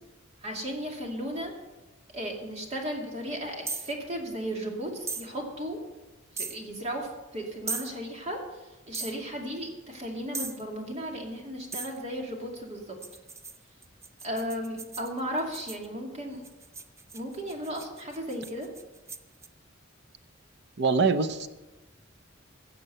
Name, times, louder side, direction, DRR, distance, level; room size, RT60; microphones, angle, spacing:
voice 1, 0.4-1.5 2.1-5.8 6.4-7.1 7.3-8.4 8.9-13.0 14.2-16.4 17.1-18.7, equal, 35° right, 1 dB, 2.4 m, -35 dB
sound 1, 3.7-3.9 5.1-5.3 6.4-6.6 7.7-7.9 8.9-9.2 10.3-10.6 11.7-12.0 13.0-15.9 16.4-19.5, right 4 dB, 15° right, 0.4 m, -37 dB
voice 2, 20.8-21.5, right 4 dB, 60° right, 11 dB, 0.7 m, -24 dB
16.0 x 6.9 x 6.7 m, 1.1 s
head